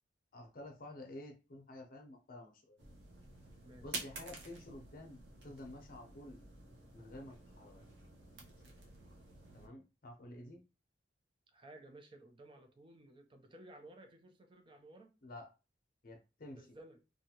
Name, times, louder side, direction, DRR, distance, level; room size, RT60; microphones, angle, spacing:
voice 1, 0.3-2.8 3.8-6.4 6.9-7.8 9.5-10.6 15.2-15.5 16.0-16.8, left 1 dB, 50° left, 0.6 m, -51 dB
sound 1, 2.8-9.7, right 3 dB, 65° right, 0.8 m, -50 dB
voice 2, 11.5-15.1 16.6-17.0, right 1 dB, 30° right, 0.4 m, -56 dB
2.6 x 2.3 x 2.8 m
head